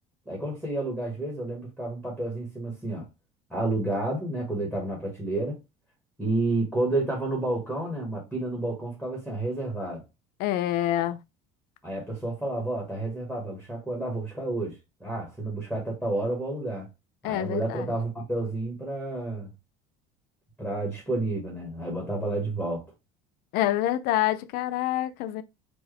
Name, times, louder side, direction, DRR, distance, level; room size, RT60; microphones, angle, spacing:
voice 1, 0.2-3.0 3.5-5.6 6.2-10.0 11.8-16.9 17.2-19.5 20.6-22.9, right 2 dB, ahead, 1.6 m, -30 dB
voice 2, 10.4-11.2 17.2-17.9 23.5-25.4, left 13 dB, 60° left, 0.5 m, -27 dB
4.6 x 2.6 x 3.3 m
cardioid pair, 130°, 18 cm